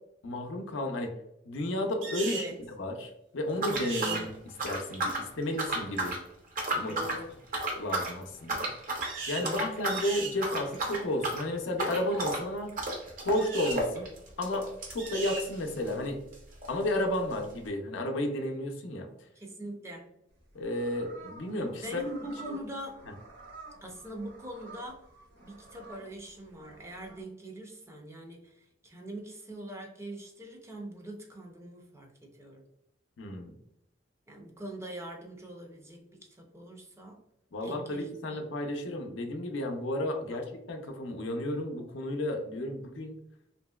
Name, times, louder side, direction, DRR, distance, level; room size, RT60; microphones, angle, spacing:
voice 1, 0.2-1.1 1.5-2.5 2.8-4.3 4.6-6.2 6.7-6.9 7.7-8.7 9.3-12.7 13.2-14.1 14.4-16.2 16.7-19.1 20.5-22.0 22.5-22.6 33.2-33.5 37.5-43.1, left 1 dB, 85° left, 4 dB, 0.5 m, -32 dB
sound 1, 2.0-2.5 3.7-4.2 9.0-9.5 9.9-10.4 13.3-13.8 15.0-15.5, right 4 dB, 90° right, 0.7 m, -37 dB
voice 2, 2.3-2.6 4.0-4.3 6.9-7.3 9.4-9.9 19.3-20.2 21.8-23.1 23.8-25.0 25.4-32.6 34.3-37.2 37.6-38.4 40.2-40.4, right 1 dB, 15° right, 1 dB, 0.5 m, -43 dB
sound 2, 3.6-5.3 5.6-6.2 6.5-7.2 7.5-8.1 8.5-9.1 9.4-10.1 10.4-16.0 16.3-16.4 16.6-16.7 17.4-17.5, right 2 dB, 45° right, 0.7 m, -33 dB
sound 3, 20.3-27.2, right 3 dB, 70° right, 1.0 m, -51 dB
2.9 x 2.6 x 2.2 m, 0.83 s
head